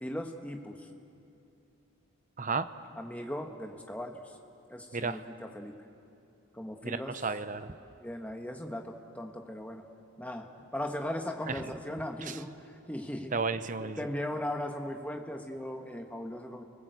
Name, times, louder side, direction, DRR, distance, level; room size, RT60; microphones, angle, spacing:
voice 1, 0.0-0.9 3.0-4.2 4.7-5.8 6.5-7.2 8.0-9.8 10.2-13.3 13.8-16.6, left 1 dB, 5° left, 4 dB, 1.4 m, -38 dB
voice 2, 2.4-2.7 4.9-5.2 6.8-7.7 11.5-11.6 12.2-12.4 13.3-14.1, right 4 dB, 40° right, 11 dB, 0.8 m, -33 dB
29.0 x 20.0 x 8.2 m, 2.7 s
head